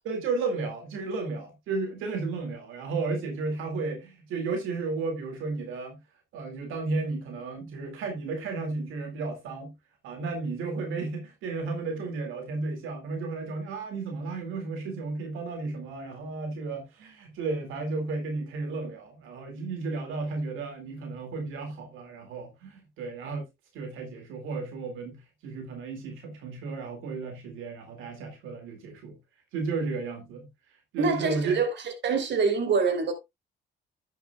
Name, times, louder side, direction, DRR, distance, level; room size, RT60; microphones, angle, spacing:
voice 1, 0.1-6.0 6.3-9.7 10.0-23.5 23.7-29.2 29.5-30.5 30.9-31.6, right 3 dB, 90° right, 2.3 m, -33 dB
voice 2, 31.0-31.7 32.0-33.1, right 5 dB, 60° right, 3.0 m, -25 dB
11.0 x 9.2 x 2.3 m
cardioid pair, 90°, 20 cm